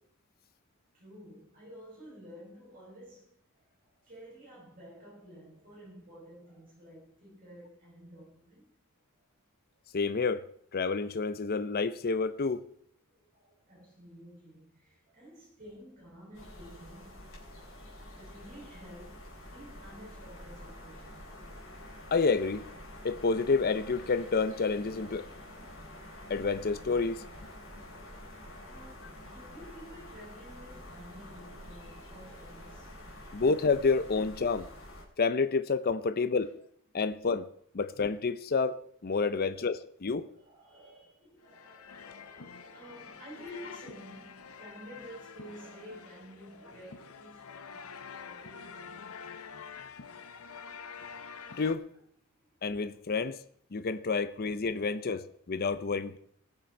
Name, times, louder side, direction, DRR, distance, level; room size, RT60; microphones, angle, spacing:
voice 1, 0.9-3.7 4.0-8.6 9.2-9.3 13.1-21.5 27.9-33.3 36.5-36.6 39.4-39.7 40.2-47.9 48.2-49.5 50.0-50.8 51.9-52.0 52.4-53.3 54.8-55.2, equal, 40° right, 5.8 m, -52 dB
voice 2, 9.9-10.5 10.7-12.7 22.1-22.6 23.0-25.3 26.3-27.5 33.3-34.7 35.2-36.5 36.9-37.5 37.7-38.7 39.0-40.3 51.6-51.8 52.6-53.4 53.7-56.2, left 4 dB, 45° left, 0.6 m, -29 dB
sound 1, 16.3-35.0, left 1 dB, 65° left, 3.9 m, -48 dB
sound 2, 41.4-51.8, left 6 dB, 90° left, 0.8 m, -47 dB
19.5 x 6.8 x 4.5 m
head